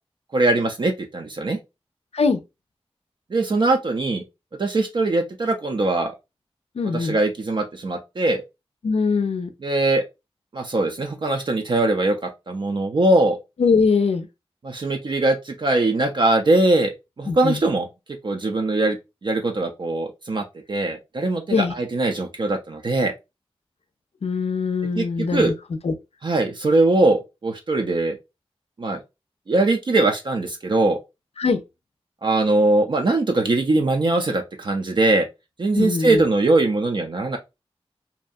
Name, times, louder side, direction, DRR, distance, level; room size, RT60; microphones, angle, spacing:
voice 1, 0.3-1.6 3.3-4.2 4.6-6.1 6.9-8.4 9.6-10.0 10.5-13.4 14.6-16.9 17.2-17.9 18.2-19.0 19.2-23.1 25.0-25.1 25.3-25.5 26.2-28.2 28.8-29.0 29.5-31.0 32.2-35.3 35.6-37.4, right 2 dB, 50° right, 0.4 m, -21 dB
voice 2, 6.8-7.2 8.8-9.5 13.6-14.3 17.3-17.6 21.5-21.7 24.2-25.5 25.8-25.9 31.4-31.6 35.7-36.2, left 4 dB, 80° left, 0.5 m, -21 dB
2.6 x 2.3 x 2.5 m
wide cardioid pair, 85°, 10 cm